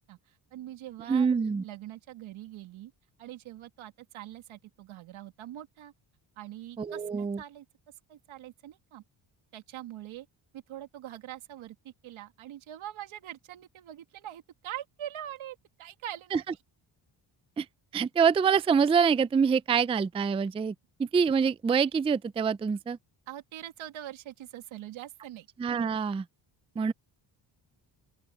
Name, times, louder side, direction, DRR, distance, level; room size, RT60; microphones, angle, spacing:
voice 1, 0.0-1.3 1.6-2.9 3.2-5.9 6.4-7.7 8.1-9.0 9.5-10.3 10.5-16.4 23.3-25.5, right 12 dB, 90° right, 2.0 m, -43 dB
voice 2, 1.1-1.6 6.8-7.4 16.3-16.4 17.6-17.7 17.9-20.7 21.0-23.0 25.6-26.2 26.8-26.9, right 6 dB, 15° right, 0.3 m, -25 dB
open air
cardioid pair, 100°, 46 cm